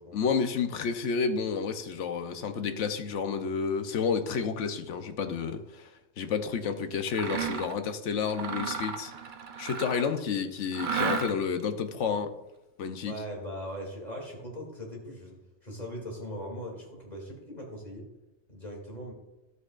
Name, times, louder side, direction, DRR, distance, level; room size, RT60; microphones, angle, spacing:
voice 1, 0.1-5.9 6.2-9.1 9.6-12.3 12.8-13.1, left 6 dB, 75° left, 1.1 m, -30 dB
Mechanisms, 7.1-7.8 8.3-10.2 10.7-11.6, right 6 dB, 50° right, 0.7 m, -33 dB
voice 2, 13.0-15.4 15.6-18.0 18.5-19.1, equal, 35° left, 2.7 m, -40 dB
12.5 x 8.2 x 2.5 m
omnidirectional pair, 1.3 m